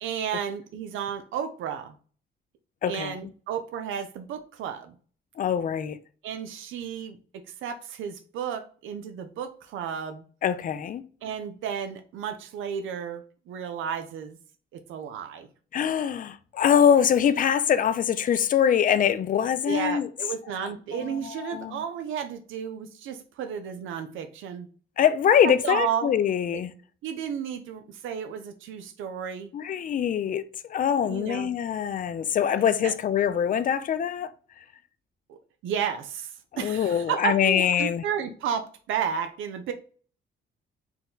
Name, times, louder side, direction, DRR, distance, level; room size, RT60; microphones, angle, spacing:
voice 1, 0.0-1.9 2.9-4.9 6.2-10.2 11.2-14.4 14.7-15.5 19.7-24.7 25.4-26.1 27.0-29.5 31.0-31.5 32.8-32.9 35.3-35.4 35.6-39.7, right 8 dB, 80° right, 0.6 m, -32 dB
voice 2, 2.8-3.2 5.4-6.0 10.4-11.0 15.7-20.1 20.9-21.8 25.0-26.7 29.5-34.3 36.5-38.0, left 8 dB, 45° left, 0.4 m, -24 dB
4.3 x 2.2 x 3.8 m
cardioid pair, 90°, 20 cm